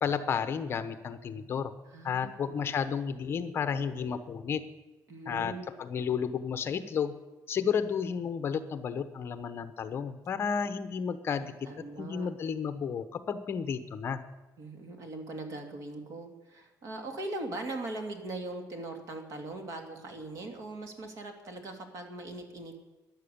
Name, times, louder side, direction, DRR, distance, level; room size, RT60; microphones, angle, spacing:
voice 1, 0.0-1.7 2.0-4.6 5.3-5.5 5.8-7.1 7.5-11.5 12.0-14.2, left 7 dB, 35° left, 11 dB, 0.9 m, -32 dB
voice 2, 1.9-2.6 5.1-5.7 11.4-12.3 14.6-22.8, right 2 dB, 50° right, 4 dB, 2.6 m, -40 dB
13.5 x 11.0 x 8.6 m, 1.1 s
cardioid pair, 170°, 7 cm